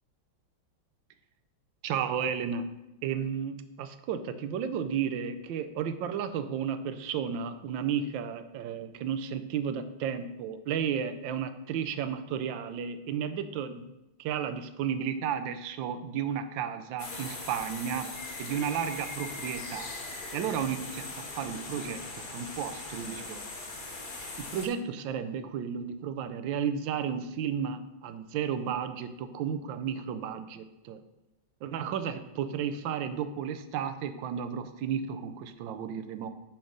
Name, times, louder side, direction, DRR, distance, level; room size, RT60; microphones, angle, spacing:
voice 1, 1.8-2.7 3.0-13.9 14.2-18.1 18.4-19.9 20.3-23.4 24.4-31.0 31.6-36.3, right 8 dB, 75° right, 10 dB, 1.3 m, -33 dB
sound 1, 17.0-24.7, left 2 dB, 40° left, 0.8 m, -40 dB
8.8 x 3.4 x 6.3 m, 0.93 s
omnidirectional pair, 2.2 m